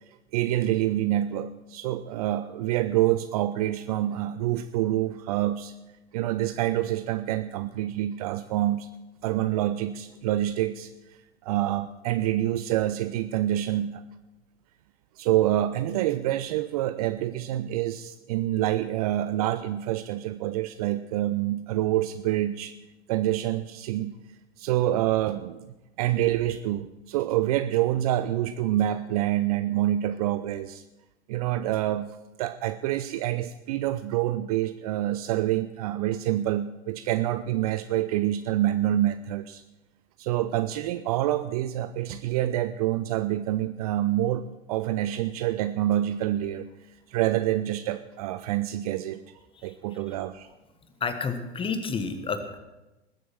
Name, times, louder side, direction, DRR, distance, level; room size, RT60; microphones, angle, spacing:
voice 1, 0.3-5.7 6.1-8.9 9.2-10.9 11.4-14.0 15.2-22.7 23.1-24.2 24.6-25.7 26.0-30.8 31.3-32.1 32.4-39.6 40.2-44.4 44.7-46.7 47.1-49.2 49.6-50.5, right 13 dB, 35° right, 12 dB, 0.5 m, -27 dB
voice 2, 51.0-52.6, left 5 dB, 15° left, 9 dB, 1.3 m, -30 dB
20.0 x 7.8 x 6.2 m, 1.0 s
figure-of-eight pair, 100°, 35 cm